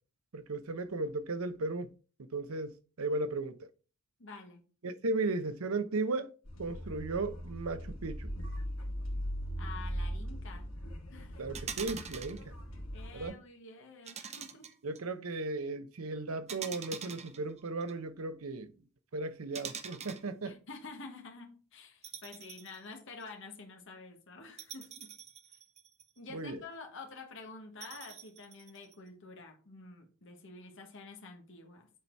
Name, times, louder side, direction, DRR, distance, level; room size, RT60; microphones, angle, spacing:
voice 1, 0.3-1.9 2.3-3.7 4.8-6.3 6.6-8.3 11.4-12.5 13.1-13.4 14.8-18.7 19.1-20.6 26.3-26.6, right 3 dB, 85° right, 0.7 m, -36 dB
voice 2, 4.2-4.6 9.6-10.7 11.1-11.4 12.9-14.7 20.4-25.2 26.2-31.9, left 3 dB, 60° left, 1.4 m, -49 dB
sound 1, 6.5-13.3, equal, 80° left, 2.1 m, -39 dB
sound 2, 11.5-12.4 14.1-15.0 16.5-17.9 19.5-20.3 22.0-22.8 23.2-23.3 24.6-26.2 27.8-28.9, right 7 dB, 30° right, 0.7 m, -44 dB
7.5 x 4.2 x 4.5 m
head